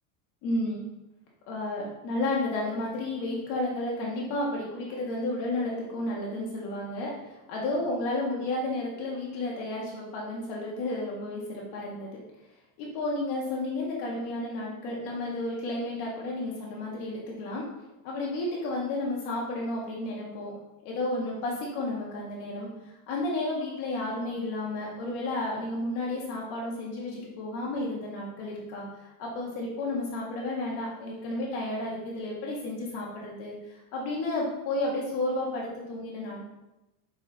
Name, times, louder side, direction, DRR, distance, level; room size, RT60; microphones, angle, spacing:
voice 1, 0.4-1.0 1.5-7.1 7.5-12.1 12.8-17.6 18.0-20.6 20.8-33.5 33.9-36.4, left 2 dB, 55° left, -3 dB, 1.6 m, -32 dB
6.1 x 4.7 x 4.1 m, 0.98 s
cardioid pair, 165°, 48 cm